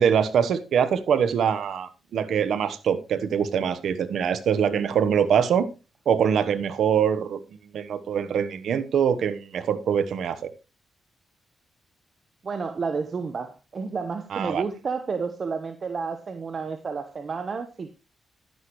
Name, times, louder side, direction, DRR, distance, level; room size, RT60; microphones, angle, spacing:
voice 1, 0.0-5.7 6.1-7.4 7.7-10.5 14.3-14.6, right 7 dB, 75° right, 1.1 m, -23 dB
voice 2, 12.4-17.9, right 5 dB, 50° right, 1.1 m, -31 dB
11.5 x 10.5 x 3.1 m
cardioid pair, 65°, 0 cm